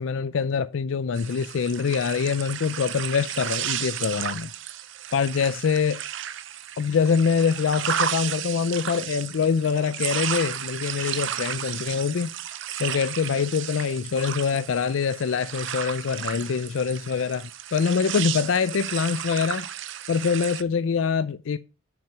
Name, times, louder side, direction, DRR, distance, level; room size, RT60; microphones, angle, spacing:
voice 1, 0.0-4.5 5.1-6.0 6.8-12.3 12.8-19.7 20.1-21.6, left 6 dB, 70° left, 0.4 m, -24 dB
sound 1, 1.2-20.6, right 10 dB, 65° right, 0.6 m, -33 dB
7.4 x 6.2 x 4.9 m
head